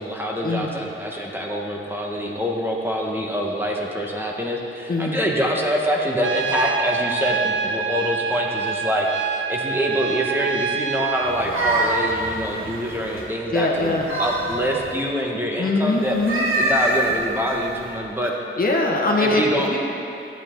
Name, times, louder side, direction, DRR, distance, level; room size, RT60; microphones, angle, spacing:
voice 1, 0.0-16.2 16.6-18.3 19.2-19.7, equal, 10° right, -1 dB, 1.4 m, -25 dB
voice 2, 4.9-5.2 13.5-14.1 15.6-16.4 18.6-19.4 19.7-19.8, left 2 dB, 45° left, -1 dB, 1.5 m, -22 dB
Trumpet, 6.2-11.4, right 6 dB, 65° right, 0.6 m, -26 dB
sound 1, 11.2-13.3 13.8-15.0 16.1-17.9, right 2 dB, 80° right, 1.9 m, -25 dB
15.0 x 8.9 x 3.8 m, 2.8 s
cardioid pair, 85°, 21 cm